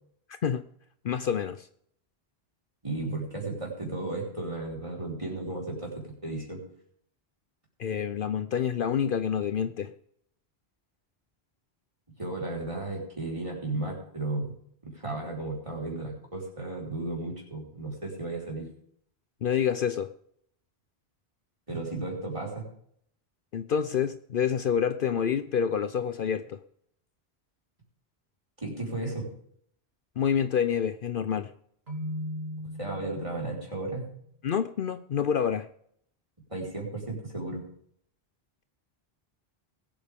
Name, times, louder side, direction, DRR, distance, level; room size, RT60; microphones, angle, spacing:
voice 1, 0.3-0.6 1.0-1.7 7.8-9.9 19.4-20.1 23.5-26.6 30.2-31.5 34.4-35.7, left 8 dB, 60° left, 11 dB, 0.8 m, -27 dB
voice 2, 2.8-6.6 12.2-14.6 14.8-18.7 21.7-22.7 28.6-29.3 32.8-34.1 36.5-37.6, right 2 dB, 30° right, -1 dB, 4.7 m, -34 dB
Keyboard (musical), 31.9-33.7, equal, 75° right, 3.0 m, -37 dB
20.5 x 8.7 x 3.6 m, 0.67 s
omnidirectional pair, 1.1 m